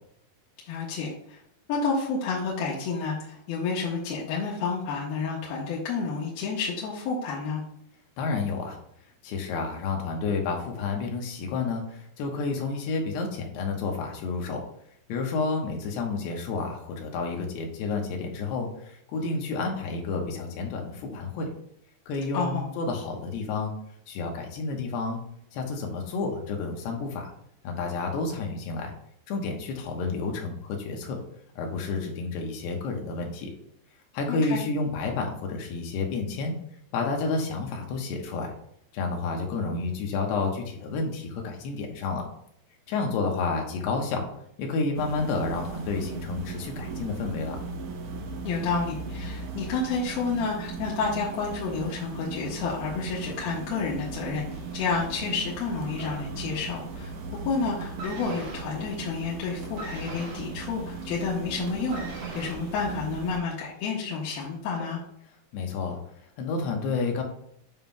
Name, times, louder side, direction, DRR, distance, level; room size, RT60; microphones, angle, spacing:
voice 1, 0.7-1.4 1.7-7.6 22.3-22.6 34.3-34.6 48.4-54.4 54.7-57.1 57.4-65.0, left 4 dB, 75° left, -5 dB, 2.8 m, -30 dB
voice 2, 8.2-8.8 9.2-14.6 15.1-21.5 22.1-23.7 24.1-25.2 25.5-27.3 27.6-28.9 29.3-31.2 31.6-33.5 34.1-36.5 36.9-38.5 38.9-42.3 42.9-44.3 44.6-47.6 65.5-66.0 66.4-67.2, left 4 dB, 90° left, 2 dB, 3.3 m, -30 dB
sound 1, 44.9-63.4, right 4 dB, 90° right, 1.5 m, -38 dB
sound 2, 54.5-56.8 57.1-57.5 57.8-63.8 64.6-64.7, right 2 dB, 55° right, 2.2 m, -43 dB
9.3 x 5.4 x 2.3 m, 0.72 s
omnidirectional pair, 4.6 m